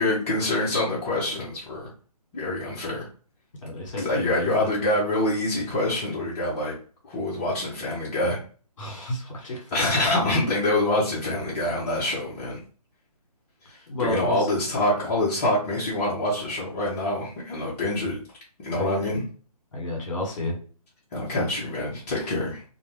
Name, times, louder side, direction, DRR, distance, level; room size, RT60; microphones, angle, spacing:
voice 1, 0.0-1.9 2.3-3.1 4.0-6.7 7.0-8.4 9.5-12.6 13.7-18.2 18.6-19.2 21.1-22.6, left 1 dB, 20° left, -7 dB, 0.6 m, -26 dB
voice 2, 3.6-4.7 8.8-9.9 13.9-14.4 18.8-19.0 19.7-20.5, left 1 dB, 55° left, 0 dB, 1.2 m, -31 dB
2.5 x 2.2 x 3.1 m, 0.41 s
figure-of-eight pair, 145°, 20 cm